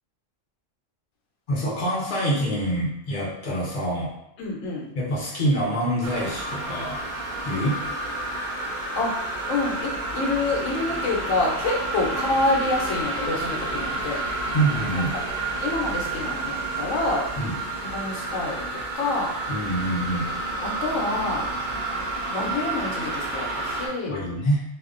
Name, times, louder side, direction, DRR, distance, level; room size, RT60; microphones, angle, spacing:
voice 1, 1.5-4.1 4.9-7.0 7.4-7.8 14.5-15.1 17.4-17.6 19.5-20.3 24.1-24.6, right 1 dB, 50° left, -5 dB, 0.7 m, -25 dB
voice 2, 4.4-4.9 7.4-7.7 8.9-9.1 9.5-14.2 14.9-15.0 15.6-17.2 17.8-19.3 20.6-21.5 22.3-24.2, left 2 dB, 80° left, -2 dB, 1.0 m, -27 dB
sound 1, 6.0-23.9, right 2 dB, 65° right, 0.7 m, -30 dB
2.5 x 2.1 x 2.4 m, 0.81 s
omnidirectional pair, 1.3 m